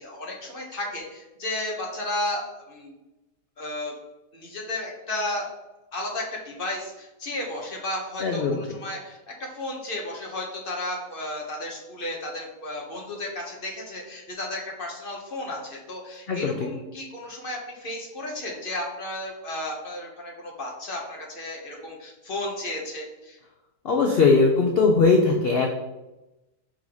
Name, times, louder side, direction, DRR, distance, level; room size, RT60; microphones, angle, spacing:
voice 1, 0.0-2.9 3.6-3.9 4.3-5.5 5.9-23.4, left 1 dB, 35° left, -1 dB, 1.2 m, -33 dB
voice 2, 8.2-8.6 16.3-16.6 23.8-25.7, left 4 dB, 65° left, 2 dB, 0.6 m, -20 dB
5.4 x 3.8 x 4.8 m, 1.0 s
omnidirectional pair, 1.9 m